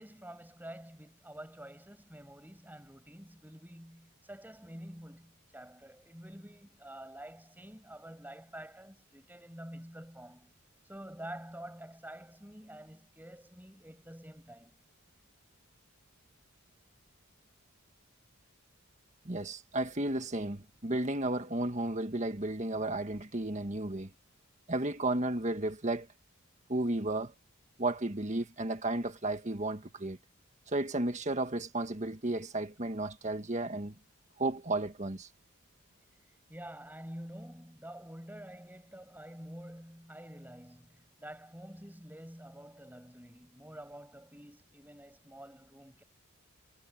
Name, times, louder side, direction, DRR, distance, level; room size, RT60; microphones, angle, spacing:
voice 1, 0.0-10.5 10.8-14.8 36.5-46.0, right 1 dB, 10° right, 8.0 m, -48 dB
voice 2, 19.2-24.1 24.7-26.1 26.7-27.3 27.8-30.2 30.7-33.9 34.4-35.3, right 2 dB, 35° right, 1.6 m, -33 dB
head